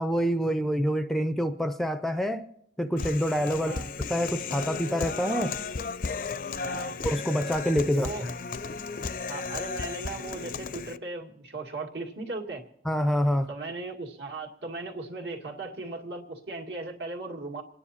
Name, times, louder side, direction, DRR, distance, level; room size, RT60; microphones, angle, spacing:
voice 1, 0.0-2.5 2.8-3.8 4.1-5.6 7.0-8.3 12.9-13.5, equal, ahead, 9 dB, 0.5 m, -26 dB
Human voice, 3.0-11.0, left 4 dB, 50° left, 0.5 m, -34 dB
voice 2, 6.6-7.0 7.9-8.3 9.3-12.6 13.5-17.6, right 3 dB, 70° right, 0 dB, 2.2 m, -37 dB
27.0 x 9.9 x 4.2 m, 0.73 s
head